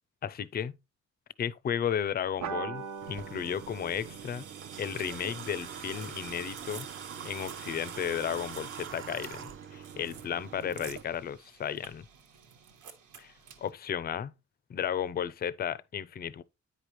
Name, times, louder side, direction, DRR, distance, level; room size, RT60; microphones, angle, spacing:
voice 1, 0.2-0.8 1.4-4.4 4.8-6.9 7.2-12.1 13.2-13.3 13.6-14.3 14.7-16.4, left 8 dB, 30° left, 0.4 m, -34 dB
Clean D Chord, 2.4-7.3, right 7 dB, 70° right, 0.9 m, -43 dB
sound 1, 2.8-13.7, right 7 dB, 90° right, 1.4 m, -49 dB
Water / Water tap faucet, 3.0-11.0, right 8 dB, 45° right, 0.6 m, -44 dB
9.3 x 5.0 x 3.0 m
cardioid pair, 135°, 30 cm